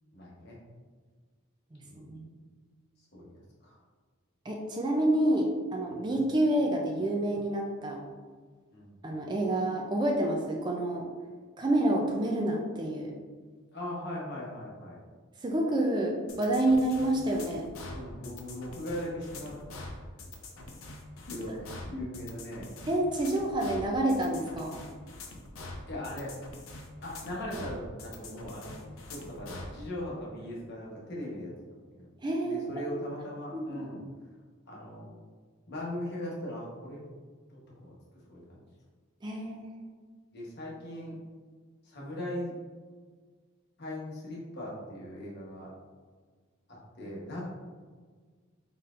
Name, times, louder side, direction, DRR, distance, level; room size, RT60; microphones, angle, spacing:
voice 1, 0.1-0.6 1.9-2.1 3.1-3.3 3.6-3.8 5.9-6.0 8.7-8.9 13.7-15.0 17.8-19.8 21.2-22.7 25.9-26.3 27.0-31.5 31.9-32.1 32.5-34.0 34.7-35.1 35.7-37.0 37.5-37.9 38.3-38.6 40.3-41.2 41.8-42.5 43.8-45.7 46.7-47.4, left 1 dB, 55° left, -5 dB, 1.1 m, -39 dB
voice 2, 1.7-2.3 4.5-8.0 9.0-11.1 11.6-13.1 15.4-17.7 22.9-24.8 32.2-32.8 33.5-33.9 39.2-39.9 47.0-47.2, right 1 dB, 20° right, 0 dB, 0.4 m, -28 dB
sound 1, 16.3-29.7, left 2 dB, 90° left, 0.7 m, -44 dB
4.0 x 4.0 x 2.5 m, 1.5 s
head